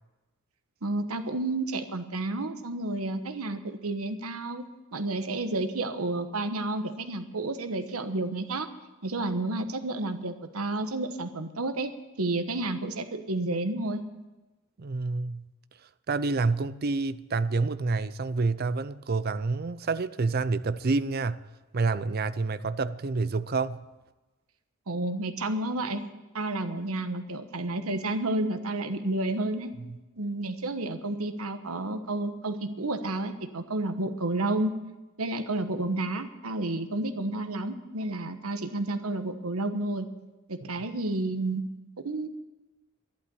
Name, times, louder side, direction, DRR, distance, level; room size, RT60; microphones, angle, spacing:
voice 1, 0.8-4.6 4.9-8.7 9.0-11.9 12.2-14.0 24.9-26.0 26.3-29.7 30.2-34.7 35.2-40.1 40.5-41.6 42.0-42.3, right 2 dB, 90° right, 1.2 m, -31 dB
voice 2, 14.8-15.5 16.1-21.4 21.7-23.8, right 3 dB, 45° right, 0.5 m, -28 dB
12.0 x 11.5 x 7.1 m
head